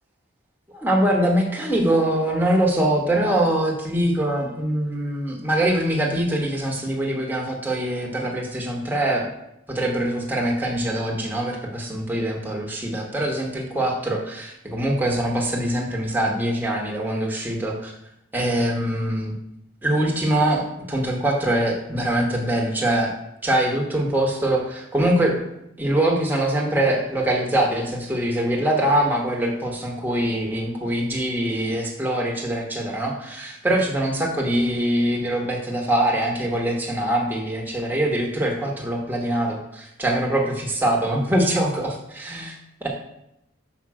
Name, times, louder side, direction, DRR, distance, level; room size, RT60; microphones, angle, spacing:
voice 1, 0.7-9.2 9.7-17.9 18.3-19.3 19.8-23.1 23.4-25.4 25.8-42.9, right 1 dB, 10° right, -1 dB, 1.2 m, -23 dB
6.2 x 5.2 x 4.8 m, 0.82 s
head